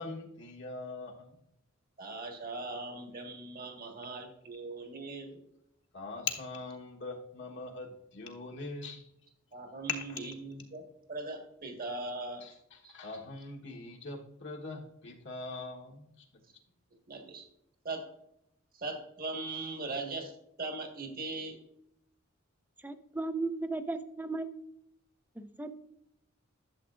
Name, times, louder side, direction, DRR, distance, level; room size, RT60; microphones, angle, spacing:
voice 1, 0.0-1.4 5.9-9.1 9.9-10.2 12.4-16.2, left 4 dB, 60° left, 0 dB, 1.2 m, -41 dB
voice 2, 2.0-5.4 9.5-12.5 12.8-12.9 17.1-17.5 17.9-18.1 18.7-20.3 20.6-21.6, right 3 dB, 45° right, 3 dB, 1.6 m, -40 dB
voice 3, 22.8-24.5 25.4-25.7, right 3 dB, 10° right, 9 dB, 0.6 m, -35 dB
12.0 x 7.4 x 2.5 m, 0.78 s
head